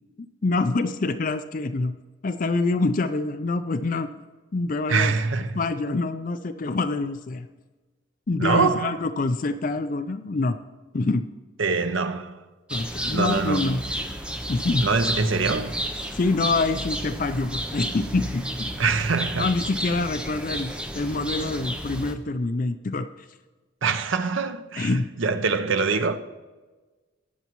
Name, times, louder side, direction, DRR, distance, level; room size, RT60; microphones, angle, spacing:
voice 1, 0.4-2.0 2.2-4.1 4.5-5.1 5.6-7.5 8.3-10.6 10.9-11.3 12.7-13.8 14.5-14.9 16.1-18.7 19.4-23.1 24.8-25.1, left 3 dB, 40° left, 0.4 m, -26 dB
voice 2, 4.9-5.6 8.4-9.0 11.6-12.4 13.1-13.7 14.8-15.8 18.8-19.5 23.8-26.2, right 4 dB, 70° right, 0.7 m, -24 dB
sound 1, 12.7-22.1, equal, 5° right, 0.6 m, -32 dB
20.0 x 7.0 x 3.0 m
head